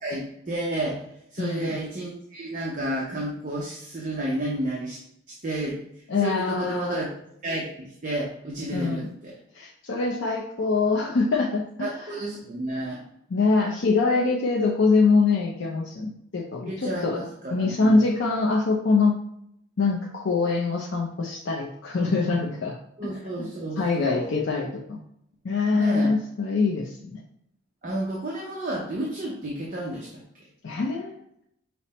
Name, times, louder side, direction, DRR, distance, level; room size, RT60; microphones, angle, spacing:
voice 1, 0.0-1.0 1.3-5.0 5.4-5.8 6.2-7.1 7.4-9.3 11.8-13.0 16.7-18.1 23.0-24.3 25.7-26.1 27.8-30.2, right 1 dB, 40° right, -3 dB, 0.6 m, -31 dB
voice 2, 1.4-1.7 6.1-7.0 8.7-9.1 9.5-11.9 13.3-17.2 17.5-19.1 19.8-22.8 23.4-23.5 23.8-25.0 25.4-27.2 30.6-31.2, left 3 dB, 60° left, -1 dB, 0.5 m, -24 dB
5.6 x 2.1 x 4.1 m, 0.75 s
head